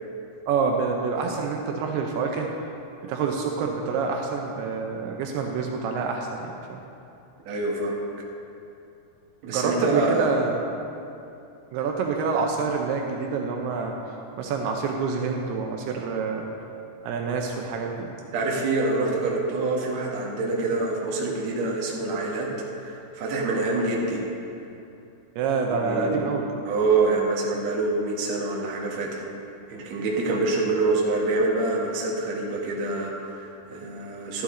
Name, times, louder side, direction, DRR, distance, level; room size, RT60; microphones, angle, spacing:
voice 1, 0.5-2.5 3.0-6.8 9.5-10.7 11.7-13.9 14.4-16.5 17.0-18.1 25.4-26.5, right 5 dB, 80° right, 1 dB, 2.7 m, -27 dB
voice 2, 7.5-8.0 9.4-10.3 18.3-24.2 25.7-26.2 26.6-29.3 29.7-34.4, right 3 dB, 55° right, -3 dB, 2.3 m, -26 dB
13.5 x 11.0 x 3.8 m, 2.7 s
omnidirectional pair, 4.7 m